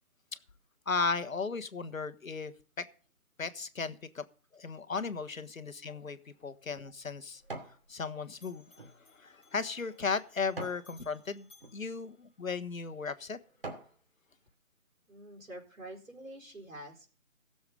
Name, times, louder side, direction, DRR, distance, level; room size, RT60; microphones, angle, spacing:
voice 1, 0.9-2.8 3.4-4.2 4.5-7.4 7.9-13.4, left 4 dB, 65° left, 1.4 m, -36 dB
sound 1, 6.0-7.8 8.3-10.9 11.5-11.8 12.4-12.6 13.1-14.0 14.5-14.6, right 2 dB, 40° right, 2.6 m, -46 dB
Bell, 7.0-8.1 8.3-12.8, left 3 dB, 5° left, 1.4 m, -64 dB
voice 2, 15.1-17.1, right 1 dB, 65° right, 4.4 m, -47 dB
16.5 x 7.1 x 5.3 m
figure-of-eight pair, 175°, 43 cm